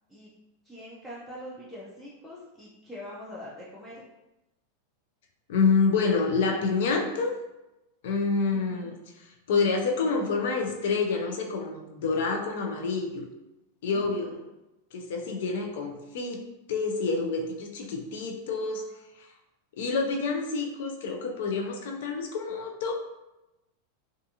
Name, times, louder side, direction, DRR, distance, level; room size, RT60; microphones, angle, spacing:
voice 1, 0.6-4.0 8.5-9.0 13.8-14.4, left 1 dB, 5° left, -8 dB, 0.4 m, -44 dB
voice 2, 5.5-7.3 8.0-13.2 13.8-14.4 14.9-18.8 19.2-19.3 19.8-22.9, left 4 dB, 65° left, 2 dB, 0.4 m, -28 dB
2.5 x 2.4 x 2.7 m, 0.97 s
supercardioid pair, 165°, 0 cm